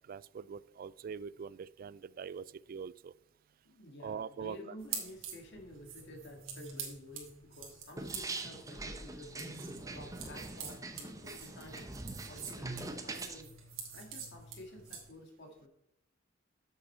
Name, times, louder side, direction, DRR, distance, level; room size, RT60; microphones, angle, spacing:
voice 1, 0.1-3.1 4.0-4.6, right 6 dB, 45° right, 19 dB, 0.3 m, -43 dB
voice 2, 3.7-9.6 9.9-11.9 12.3-13.5 13.9-15.7, left 1 dB, 60° left, 3 dB, 1.9 m, -51 dB
sound 1, 4.8-15.1, right 7 dB, 90° right, 2.2 m, -47 dB
sound 2, 8.0-13.4, right 2 dB, 15° right, 0.8 m, -43 dB
7.9 x 6.9 x 4.3 m, 0.81 s
head